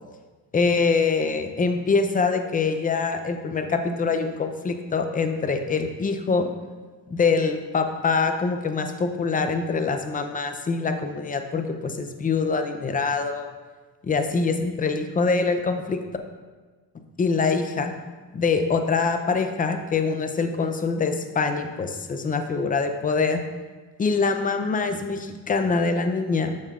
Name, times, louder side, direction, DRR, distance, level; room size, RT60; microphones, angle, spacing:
voice 1, 0.5-6.5 7.1-13.5 14.0-16.0 17.2-17.9 18.3-23.4 24.0-26.5, left 4 dB, 20° left, 7 dB, 0.5 m, -24 dB
8.9 x 6.5 x 2.4 m, 1.3 s
cardioid pair, 110°, 42 cm